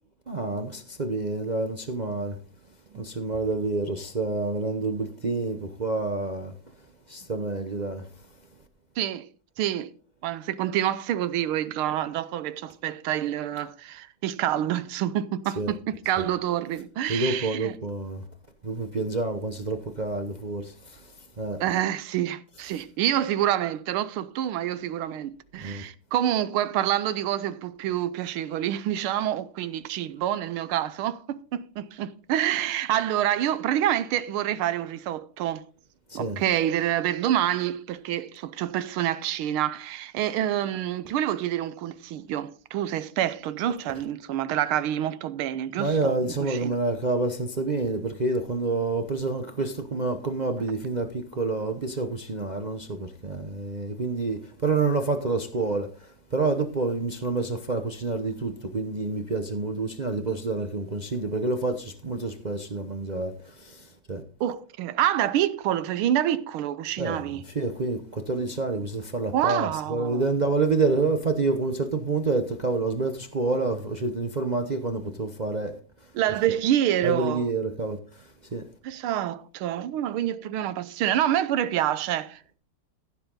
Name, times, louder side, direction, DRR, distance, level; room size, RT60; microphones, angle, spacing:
voice 1, 0.3-2.4 2.9-6.5 7.1-8.1 15.6-15.7 17.1-18.2 18.6-21.6 25.5-25.9 36.1-36.4 43.9-44.0 45.8-64.2 67.0-75.8 77.0-78.7, right 3 dB, 65° right, 0.4 m, -28 dB
voice 2, 9.0-9.3 9.6-9.9 10.2-17.7 21.6-35.6 36.1-46.2 46.4-46.7 64.4-67.4 69.3-70.3 76.1-77.5 78.8-82.6, right 11 dB, 80° right, 1.6 m, -27 dB
15.0 x 7.4 x 3.8 m
omnidirectional pair, 2.3 m